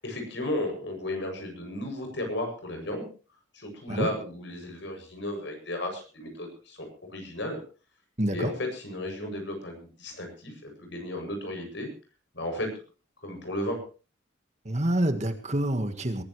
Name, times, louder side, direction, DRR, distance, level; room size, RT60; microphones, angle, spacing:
voice 1, 0.0-3.1 3.5-7.6 8.3-11.9 12.3-12.7 13.2-13.8, left 1 dB, 65° left, 4 dB, 7.8 m, -34 dB
voice 2, 8.2-8.5 14.7-16.2, right 1 dB, 35° right, 8 dB, 1.8 m, -27 dB
23.0 x 16.0 x 3.3 m, 0.36 s
head